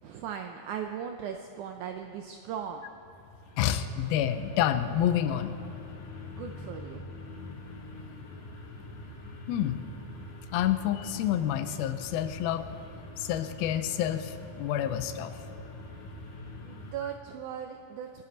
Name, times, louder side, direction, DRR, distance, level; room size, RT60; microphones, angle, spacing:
voice 1, 0.0-2.9 6.2-7.0 16.6-18.2, right 8 dB, 80° right, 5 dB, 1.8 m, -38 dB
sound 1, 2.9-16.9, left 2 dB, 65° left, 3.6 m, -44 dB
voice 2, 3.6-5.6 9.5-9.8 10.5-12.7 13.2-15.3, left 11 dB, 85° left, 10 dB, 2.5 m, -28 dB
27.5 x 10.0 x 3.9 m, 2.7 s
omnidirectional pair, 4.2 m